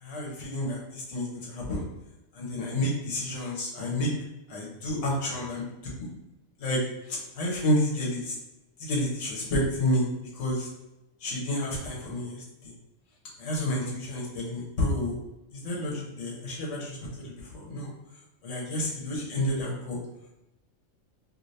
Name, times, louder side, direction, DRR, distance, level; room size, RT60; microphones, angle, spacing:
voice 1, 0.0-1.8 2.3-4.1 4.5-5.6 6.0-6.1 6.6-6.8 7.1-8.4 8.8-10.1 10.3-10.7 11.2-12.7 13.4-15.1 15.5-17.0 17.5-17.9 18.4-20.0, left 1 dB, 70° left, -4 dB, 1.2 m, -30 dB
2.9 x 2.7 x 3.1 m, 0.94 s
omnidirectional pair, 1.3 m